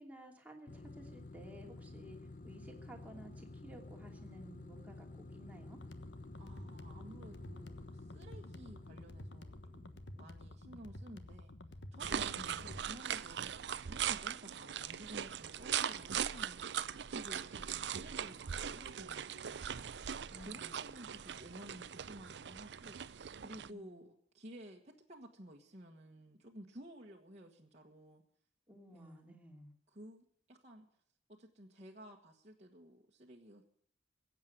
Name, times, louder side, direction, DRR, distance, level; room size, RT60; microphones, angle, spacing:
voice 1, 0.0-2.2 2.4-5.8 12.1-12.8 20.3-20.8 23.6-24.1 28.7-29.7, right 1 dB, 10° right, 1 dB, 2.7 m, -54 dB
sound 1, 0.7-10.5, left 2 dB, 45° left, 0.8 m, -52 dB
sound 2, 5.8-12.8, left 1 dB, 85° left, 1.3 m, -51 dB
voice 2, 6.4-11.5 11.9-12.3 12.6-13.5 13.8-19.9 20.4-28.2 28.9-29.4 29.9-30.9 31.3-33.7, equal, 40° right, -1 dB, 1.5 m, -54 dB
sound 3, 12.0-23.7, right 8 dB, 70° right, 0.5 m, -40 dB
16.0 x 8.4 x 9.3 m, 0.63 s
head